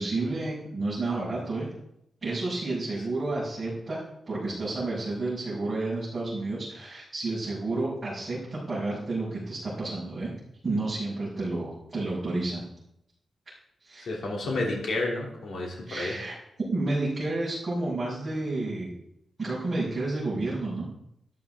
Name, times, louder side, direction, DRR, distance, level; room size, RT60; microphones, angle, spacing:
voice 1, 0.0-1.7 2.2-10.3 10.6-12.6 13.9-14.1 15.9-16.4 16.7-18.9 19.4-20.9, right 2 dB, 25° right, -10 dB, 5.5 m, -30 dB
voice 2, 14.1-16.2, left 2 dB, 70° left, -2 dB, 3.2 m, -30 dB
13.0 x 12.5 x 3.8 m, 0.79 s
wide cardioid pair, 170°, 0 cm